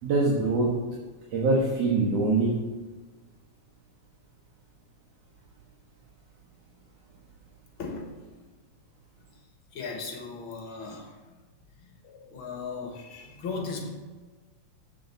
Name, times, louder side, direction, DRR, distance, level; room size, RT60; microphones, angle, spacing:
voice 1, 0.0-0.8 1.3-2.7, right 3 dB, 65° right, -4 dB, 2.6 m, -24 dB
voice 2, 7.8-8.3 9.2-11.3 11.8-13.9, left 4 dB, 50° left, 2 dB, 1.9 m, -38 dB
7.5 x 7.1 x 7.1 m, 1.3 s
omnidirectional pair, 3.3 m